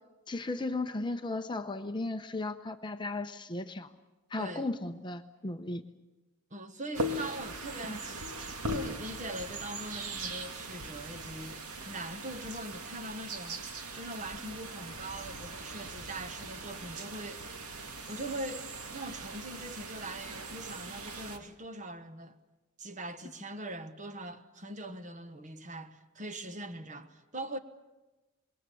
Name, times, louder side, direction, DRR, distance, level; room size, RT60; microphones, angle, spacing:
voice 1, 0.3-3.9 4.3-5.9 7.9-8.0, left 2 dB, 20° left, 0.7 m, -35 dB
voice 2, 4.4-4.7 6.5-8.3 8.7-17.5 18.1-22.4 22.8-27.6, right 1 dB, 35° right, 1.2 m, -42 dB
sound 1, 6.9-21.4, right 2 dB, 85° right, 2.2 m, -40 dB
26.5 x 22.0 x 7.0 m
head